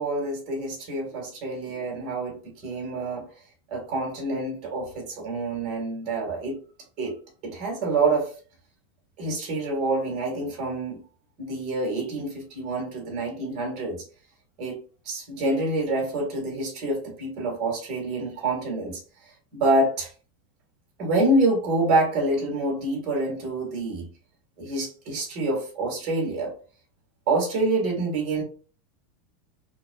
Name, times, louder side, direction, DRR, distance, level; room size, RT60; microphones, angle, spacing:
voice 1, 0.0-3.3 3.7-6.6 7.0-7.1 7.4-8.3 9.2-11.0 11.4-14.0 14.6-14.8 15.1-19.0 19.5-20.1 21.0-24.1 24.6-26.5 27.3-28.4, right 2 dB, 40° right, 0 dB, 1.9 m, -27 dB
5.6 x 2.5 x 2.4 m, 0.39 s
supercardioid pair, 155°, 0 cm